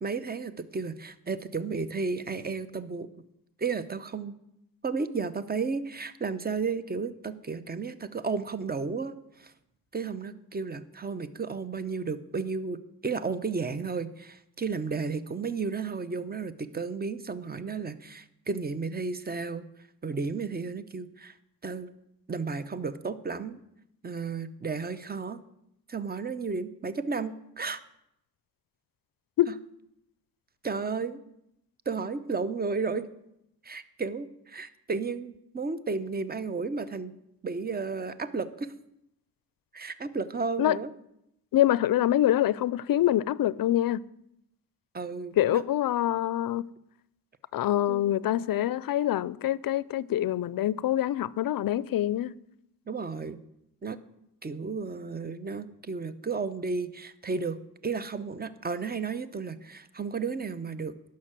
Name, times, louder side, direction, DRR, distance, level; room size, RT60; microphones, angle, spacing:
voice 1, 0.0-3.1 3.6-4.3 4.8-9.5 9.9-19.7 20.0-21.3 21.6-21.9 22.3-23.6 24.0-25.4 25.9-27.8 30.6-31.2 31.9-33.1 33.6-37.1 37.4-38.7 39.7-40.9 44.9-45.6 47.9-48.1 52.9-53.4 53.8-54.0 54.4-60.9, right 4 dB, 25° right, 0.7 m, -33 dB
voice 2, 41.5-44.0 45.4-46.6 47.5-52.3, left 13 dB, 60° left, 0.5 m, -25 dB
11.0 x 5.8 x 7.5 m
cardioid pair, 80°, 39 cm